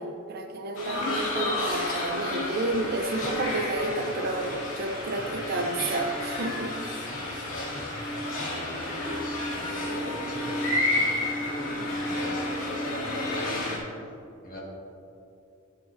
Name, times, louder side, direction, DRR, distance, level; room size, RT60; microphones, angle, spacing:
voice 1, 0.0-6.7, right 2 dB, 50° right, 4 dB, 0.6 m, -30 dB
sound 1, 0.8-13.8, left 2 dB, 90° left, 2.2 m, -31 dB
voice 2, 7.5-7.8 8.5-13.8 14.4-14.6, equal, 45° left, -3 dB, 1.7 m, -39 dB
13.0 x 7.4 x 2.6 m, 2.8 s
head